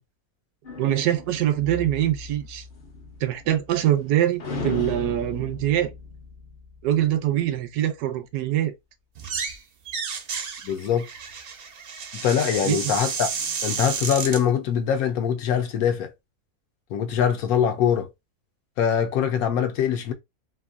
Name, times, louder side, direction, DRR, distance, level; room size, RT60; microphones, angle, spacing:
sound 1, 0.6-4.1 4.4-7.1, left 3 dB, 45° left, 0.7 m, -36 dB
voice 1, 0.8-2.6 3.2-5.9 6.8-8.7 12.6-12.8, right 12 dB, 85° right, 1.1 m, -23 dB
sound 2, 9.2-9.6 9.9-14.4, right 6 dB, 65° right, 0.6 m, -31 dB
voice 2, 10.6-11.1 12.2-13.3 13.6-16.1 16.9-18.1 18.8-20.1, left 8 dB, 75° left, 1.0 m, -23 dB
2.9 x 2.5 x 2.5 m
omnidirectional pair, 1.6 m